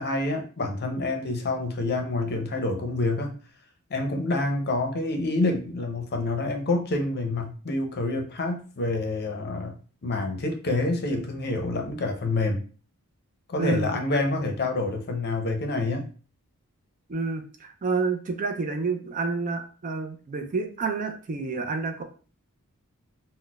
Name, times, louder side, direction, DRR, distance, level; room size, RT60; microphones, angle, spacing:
voice 1, 0.0-3.4 3.9-9.7 10.0-12.6 13.5-16.1, left 2 dB, 50° left, 3 dB, 0.6 m, -27 dB
voice 2, 13.6-13.9 17.1-22.0, right 4 dB, 35° right, 5 dB, 0.4 m, -29 dB
3.9 x 2.1 x 2.3 m, 0.38 s
head